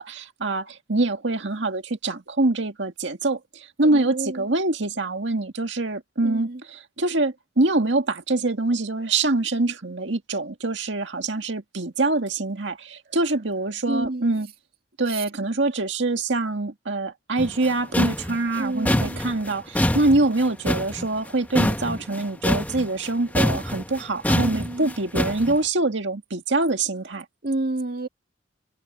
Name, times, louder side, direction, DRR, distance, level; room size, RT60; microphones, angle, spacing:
voice 1, 0.0-14.5 15.0-27.3, right 2 dB, 75° right, 2.0 m, -25 dB
voice 2, 3.8-4.5 6.2-6.6 9.7-9.8 13.9-14.4 15.1-15.2 18.6-19.2 24.4-24.9 27.4-28.1, right 2 dB, 55° right, 2.2 m, -30 dB
sound 1, 17.4-23.1 23.3-25.5, left 1 dB, 10° left, 1.1 m, -25 dB
head